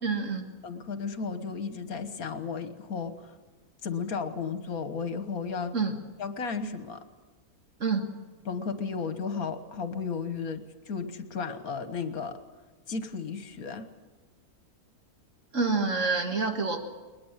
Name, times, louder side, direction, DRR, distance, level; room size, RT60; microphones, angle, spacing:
voice 1, 0.0-0.5 5.7-6.0 7.8-8.0 15.5-16.8, right 4 dB, 55° right, 5 dB, 2.0 m, -27 dB
voice 2, 0.6-3.3 3.8-5.7 6.2-7.0 8.5-12.4 12.9-13.9, left 5 dB, 70° left, 10 dB, 1.8 m, -34 dB
20.5 x 20.5 x 7.4 m, 1.3 s
omnidirectional pair, 1.6 m